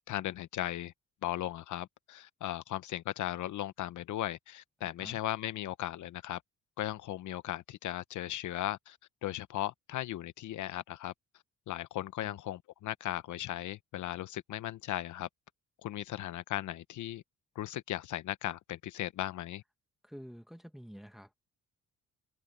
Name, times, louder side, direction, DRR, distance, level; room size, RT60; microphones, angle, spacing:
voice 1, 0.1-0.9 1.2-6.4 6.8-9.0 9.2-11.1 11.7-15.3 15.8-17.2 17.5-19.6, left 13 dB, 75° left, 1.0 m, -37 dB
voice 2, 4.8-5.2 12.2-12.4 20.0-21.3, equal, ahead, 1.8 m, -49 dB
cardioid pair, 90°, 30 cm